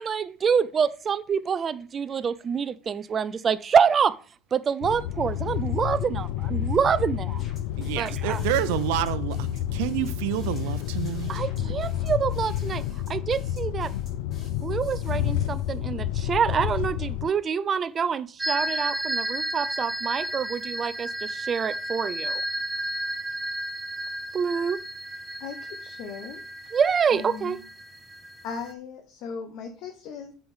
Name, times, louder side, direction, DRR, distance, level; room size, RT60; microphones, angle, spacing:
voice 1, 0.0-4.1 4.5-7.4 8.0-8.4 11.3-13.9 14.6-22.4 24.3-24.8 26.7-27.6, right 7 dB, 30° right, 0.5 m, -26 dB
sound 1, 4.8-17.3, left 12 dB, 80° left, 0.5 m, -30 dB
sound 2, 7.4-15.8, left 3 dB, 30° left, 2.6 m, -46 dB
voice 2, 7.8-11.7, right 14 dB, 80° right, 0.6 m, -29 dB
sound 3, 18.4-28.7, right 1 dB, 10° right, 0.9 m, -33 dB
voice 3, 25.4-26.4 27.1-27.6 28.4-30.3, left 5 dB, 60° left, 1.2 m, -38 dB
8.4 x 4.9 x 5.5 m
supercardioid pair, 125°, 0 cm